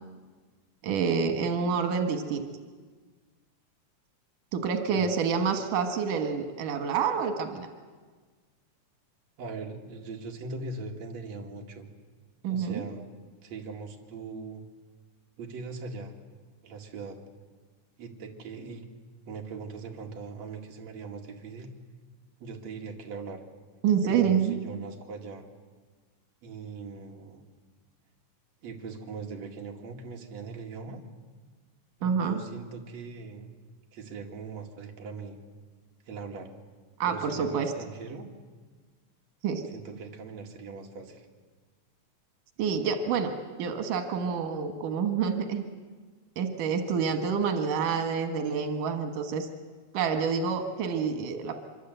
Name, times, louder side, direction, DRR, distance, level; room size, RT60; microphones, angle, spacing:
voice 1, 0.8-2.4 4.5-7.7 12.4-12.9 23.8-24.6 32.0-32.4 37.0-37.7 39.4-39.6 42.6-43.3 43.6-45.6 46.4-49.5 49.9-51.5, right 6 dB, 85° right, 5 dB, 3.1 m, -27 dB
voice 2, 9.4-11.9 12.5-13.1 13.4-14.6 15.4-16.1 16.6-17.2 18.0-18.8 19.3-21.7 22.4-23.4 24.0-25.4 26.4-27.4 28.6-31.0 32.0-33.5 33.9-35.4 36.1-36.5 37.1-38.3 39.7-41.3, right 4 dB, 60° right, 1 dB, 3.3 m, -40 dB
25.0 x 24.0 x 8.0 m, 1.4 s
omnidirectional pair, 3.6 m